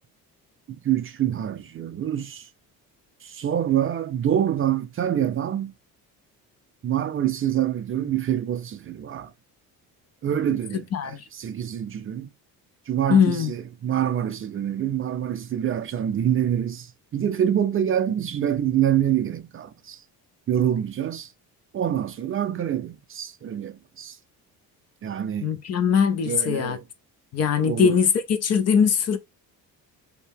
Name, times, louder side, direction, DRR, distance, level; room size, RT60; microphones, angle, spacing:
voice 1, 0.7-2.5 3.2-5.7 6.8-9.3 10.2-12.3 12.9-20.0 20.5-21.3 21.7-24.2 25.0-25.5 26.3-26.8 27.6-28.0, right 10 dB, 35° right, 0.4 m, -26 dB
voice 2, 10.9-11.2 13.1-13.5 25.4-26.8 27.3-28.1 28.4-29.2, left 7 dB, 45° left, 0.5 m, -21 dB
2.7 x 2.1 x 3.4 m
cardioid pair, 95°, 37 cm